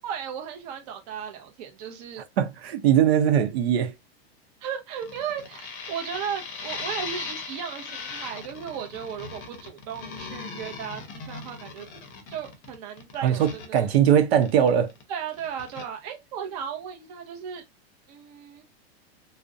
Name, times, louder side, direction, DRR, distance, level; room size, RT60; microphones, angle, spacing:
voice 1, 0.0-2.2 4.6-12.0 12.3-13.9 15.1-17.6 18.1-18.6, right 8 dB, 40° right, 0.6 m, -36 dB
voice 2, 2.4-3.9 13.2-14.9, right 9 dB, 80° right, 0.7 m, -21 dB
sound 1, 5.0-15.0 15.3-15.9, left 5 dB, 30° left, 0.6 m, -38 dB
2.4 x 2.0 x 2.5 m
supercardioid pair, 165°, 31 cm